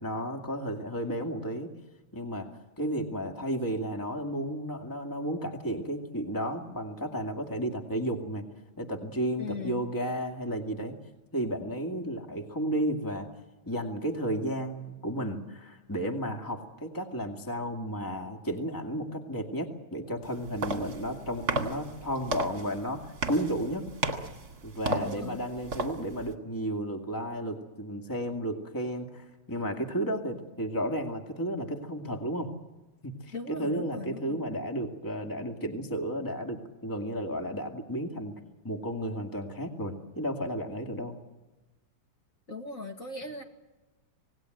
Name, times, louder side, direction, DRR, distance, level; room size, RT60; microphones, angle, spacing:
voice 1, 0.0-1.7 2.1-2.5 2.8-8.4 8.8-10.9 11.3-13.3 13.7-23.8 24.6-32.5 33.0-38.3 38.6-41.2, equal, 10° left, 3 dB, 2.1 m, -33 dB
voice 2, 9.4-9.8 24.9-25.4 33.3-34.4 42.5-43.4, left 2 dB, 40° left, 3 dB, 2.6 m, -38 dB
sound 1, 20.2-26.3, right 2 dB, 50° right, 2.6 m, -34 dB
27.0 x 19.5 x 7.9 m, 1.1 s
omnidirectional pair, 2.2 m